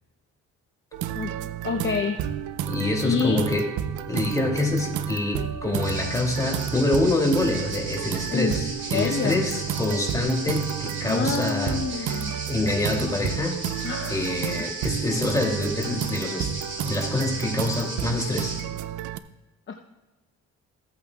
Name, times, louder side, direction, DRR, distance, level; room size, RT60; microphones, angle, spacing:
sound 1, 0.9-19.2, right 10 dB, 85° right, 0.6 m, -31 dB
voice 1, 1.6-2.3 3.0-3.4 8.3-8.5 8.9-9.4 11.0-12.4 13.8-14.3 19.7-19.8, left 5 dB, 40° left, 3 dB, 0.8 m, -27 dB
voice 2, 2.7-3.7 4.1-12.2 12.5-13.6 14.1-16.5 16.8-18.6, left 2 dB, 10° left, 0 dB, 2.7 m, -26 dB
sound 2, 5.8-18.6, right 2 dB, 40° right, 2.4 m, -36 dB
15.5 x 8.6 x 2.4 m, 1.1 s
cardioid pair, 90°, 30 cm